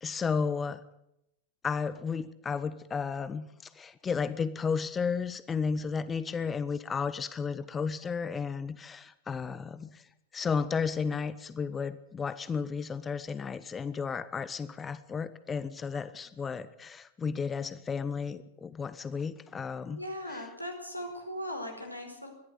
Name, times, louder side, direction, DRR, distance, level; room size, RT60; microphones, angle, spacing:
voice 1, 0.0-0.8 1.6-3.5 3.8-10.0 10.3-20.0 20.3-20.5, left 5 dB, 20° left, 15 dB, 0.9 m, -33 dB
voice 2, 19.9-22.3, equal, 90° left, 2 dB, 4.9 m, -38 dB
22.0 x 15.0 x 8.3 m, 0.81 s
figure-of-eight pair, 90°, 0 cm